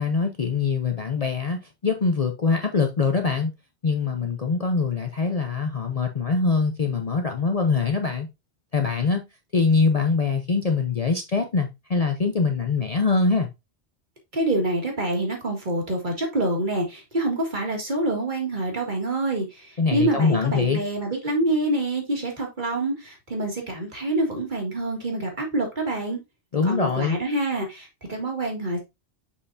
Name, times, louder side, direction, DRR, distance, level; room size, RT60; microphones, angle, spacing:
voice 1, 0.0-1.6 1.8-3.5 3.8-8.3 8.7-9.2 9.5-13.5 19.8-20.8 26.5-27.2, left 4 dB, 40° left, 0.6 m, -23 dB
voice 2, 14.3-19.5 19.9-26.2 26.6-28.8, right 1 dB, 45° right, 2.0 m, -26 dB
6.5 x 5.5 x 2.6 m
omnidirectional pair, 1.2 m